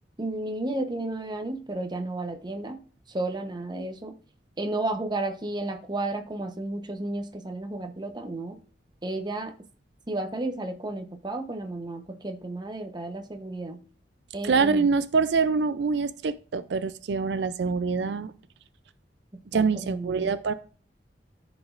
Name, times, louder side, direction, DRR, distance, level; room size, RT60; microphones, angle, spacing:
voice 1, 0.2-2.8 3.1-4.2 4.6-8.6 9.0-9.6 10.1-13.8 14.3-14.9 19.5-20.3, right 2 dB, 25° right, 0.9 m, -32 dB
voice 2, 14.4-18.3 19.5-20.5, right 4 dB, 70° right, 0.4 m, -25 dB
13.5 x 5.1 x 2.5 m
head